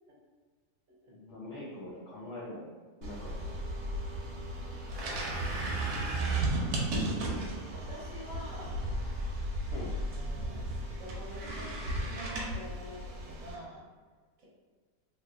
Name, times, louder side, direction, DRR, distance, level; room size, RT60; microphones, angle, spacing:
voice 1, 1.1-2.7 3.0-3.3 7.1-7.4 9.7-9.9, left 1 dB, 85° left, -5 dB, 0.5 m, -43 dB
sound 1, 3.0-13.6, right 1 dB, 75° right, 1.1 m, -34 dB
voice 2, 3.4-4.4 4.8-4.9 5.2-5.8 7.7-8.8 9.7-13.8 14.4-14.5, equal, 60° right, -5 dB, 1.1 m, -48 dB
3.2 x 2.8 x 2.4 m, 1.5 s
omnidirectional pair, 1.7 m